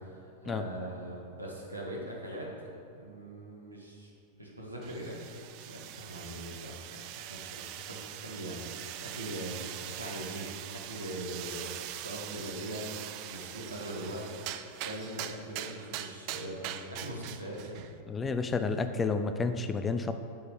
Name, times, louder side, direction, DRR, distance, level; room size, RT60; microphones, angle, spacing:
voice 1, 0.0-2.7 2.9-4.1 4.4-10.6 10.8-17.9, right 1 dB, 85° right, -3 dB, 1.8 m, -41 dB
sound 1, 4.8-17.9, right 12 dB, 45° right, 0.4 m, -42 dB
voice 2, 18.1-20.1, left 4 dB, 15° left, 8 dB, 0.5 m, -30 dB
7.8 x 5.4 x 7.6 m, 2.4 s
figure-of-eight pair, 90°, 0 cm